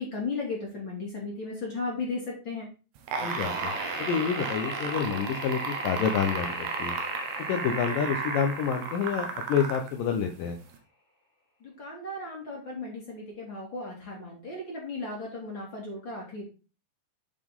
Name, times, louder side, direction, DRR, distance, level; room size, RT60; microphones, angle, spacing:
voice 1, 0.0-2.7 11.6-16.4, left 3 dB, 35° left, -3 dB, 2.2 m, -35 dB
sound 1, 3.0-9.9 10.7-10.8, right 5 dB, 75° right, 2.9 m, -33 dB
sound 2, 3.1-10.1, left 1 dB, 10° right, 1.1 m, -42 dB
voice 2, 3.2-3.7 4.0-7.0 7.5-10.6, left 7 dB, 75° left, 4 dB, 2.1 m, -28 dB
10.0 x 5.2 x 3.6 m, 0.33 s
omnidirectional pair, 4.8 m